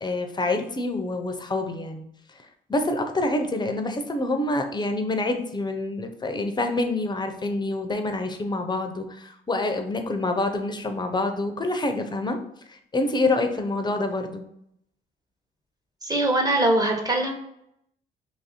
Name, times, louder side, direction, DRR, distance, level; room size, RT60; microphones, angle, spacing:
voice 1, 0.0-2.0 2.7-12.4 12.7-14.4, left 2 dB, 20° left, 6 dB, 0.6 m, -27 dB
voice 2, 16.0-17.3, right 1 dB, 20° right, 1 dB, 1.0 m, -22 dB
2.9 x 2.7 x 4.1 m, 0.74 s
cardioid pair, 90°, 20 cm